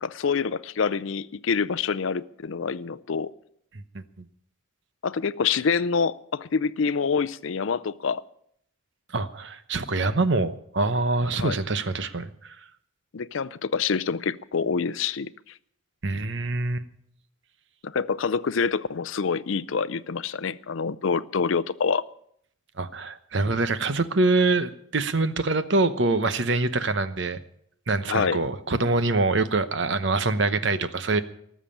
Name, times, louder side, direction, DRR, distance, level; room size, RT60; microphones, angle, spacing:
voice 1, 0.0-3.3 5.0-8.2 11.3-11.6 13.1-15.5 17.8-22.0 28.1-28.4, left 5 dB, 65° left, 0.5 m, -26 dB
voice 2, 9.1-12.5 16.0-16.8 22.8-27.4 27.9-31.2, right 3 dB, 55° right, 0.9 m, -25 dB
18.5 x 7.4 x 8.7 m
head